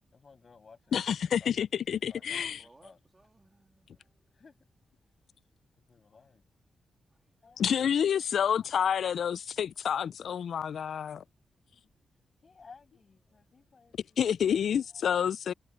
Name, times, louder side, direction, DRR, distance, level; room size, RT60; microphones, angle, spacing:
voice 1, 0.1-1.0 1.4-1.6 2.1-2.4 2.8-3.0 4.3-4.5 5.9-6.4 7.4-7.6 12.4-14.2, left 5 dB, 40° left, 6.8 m, -56 dB
voice 2, 0.9-2.7 7.6-11.2 14.2-15.5, left 8 dB, 70° left, 0.4 m, -29 dB
voice 3, 2.3-4.3 7.4-7.6, right 2 dB, 20° right, 2.7 m, -62 dB
wide cardioid pair, 120°, 0 cm